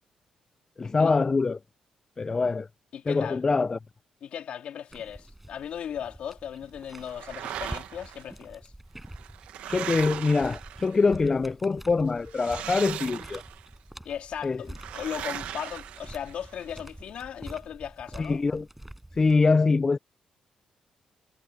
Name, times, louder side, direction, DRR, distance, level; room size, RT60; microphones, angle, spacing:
voice 1, 0.8-1.6 2.2-2.7 3.1-3.8 9.7-13.4 14.4-14.6 18.2-18.7 19.2-20.0, left 4 dB, 30° left, 0.5 m, -24 dB
voice 2, 2.9-3.4 4.2-8.7 14.0-18.4, left 9 dB, 70° left, 3.0 m, -37 dB
sound 1, 4.9-19.3, right 1 dB, 5° right, 5.2 m, -46 dB
sound 2, 7.0-8.2 9.0-11.2 12.3-13.7 14.7-16.6, right 11 dB, 90° right, 1.2 m, -38 dB
cardioid pair, 100°, 2 cm